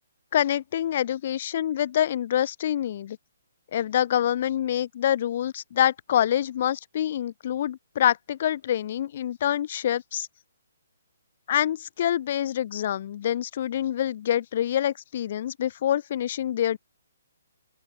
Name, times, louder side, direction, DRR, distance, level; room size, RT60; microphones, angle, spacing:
voice 1, 0.3-3.2 3.7-10.3 11.5-16.8, left 10 dB, 45° left, 1.3 m, -26 dB
open air
figure-of-eight pair, 135°, 0 cm